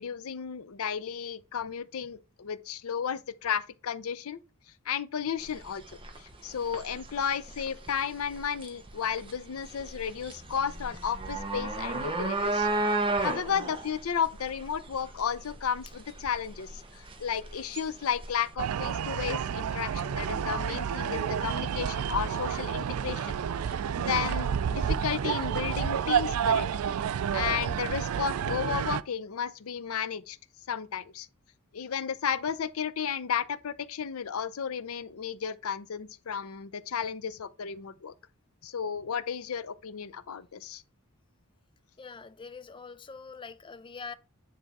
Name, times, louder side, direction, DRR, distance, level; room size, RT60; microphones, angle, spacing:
voice 1, 0.0-4.4 4.9-23.4 23.7-26.7 27.3-30.4 30.7-31.3 31.7-38.1 38.6-40.8, left 7 dB, 75° left, 0.5 m, -33 dB
sound 1, 5.4-18.5, right 2 dB, 25° right, 1.0 m, -34 dB
sound 2, 18.6-29.0, right 8 dB, 85° right, 0.4 m, -30 dB
voice 2, 42.0-44.1, left 5 dB, 25° left, 0.4 m, -44 dB
9.4 x 3.4 x 4.1 m
head